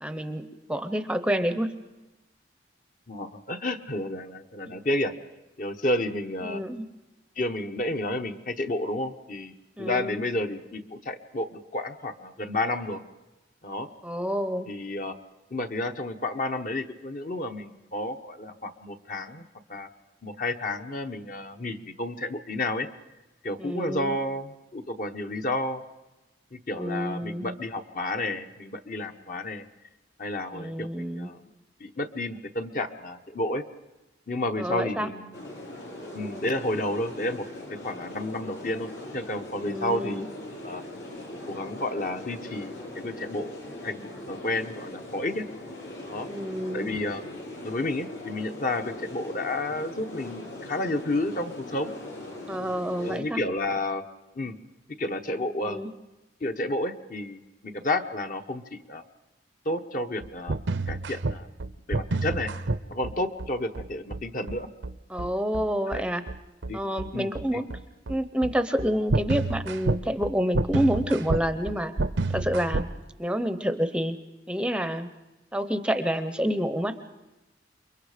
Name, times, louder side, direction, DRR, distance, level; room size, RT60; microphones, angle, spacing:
voice 1, 0.0-1.7 4.7-4.8 6.4-6.8 9.8-10.2 14.0-14.7 23.6-24.1 26.8-27.5 30.5-31.3 34.6-35.1 39.6-40.3 46.3-46.9 52.5-53.4 55.6-55.9 65.1-66.2 66.7-67.7 68.1-71.9 72.3-72.9 73.2-74.2 74.5-75.1 75.5-76.9, equal, 5° right, 9 dB, 0.7 m, -28 dB
voice 2, 3.1-5.1 5.6-6.6 7.4-13.0 13.6-13.9 14.7-15.1 15.5-19.9 20.2-22.9 23.4-25.8 26.5-29.7 30.2-31.4 31.8-33.6 34.3-35.4 36.1-37.4 37.7-38.9 39.1-40.2 40.6-40.8 41.5-43.5 43.8-45.5 46.1-46.3 46.7-47.2 47.6-51.9 53.0-54.0 54.3-54.6 55.0-55.8 56.4-59.0 59.6-60.6 60.9-61.5 61.9-62.5 62.9-64.7 65.9-66.0 66.7-66.8 67.1-67.6, left 1 dB, 45° left, 6 dB, 1.0 m, -31 dB
sound 1, 35.3-53.2, left 1 dB, 80° left, 6.4 m, -40 dB
sound 2, 60.2-72.9, right 2 dB, 80° right, 0.7 m, -29 dB
28.5 x 23.0 x 5.0 m, 1.0 s
head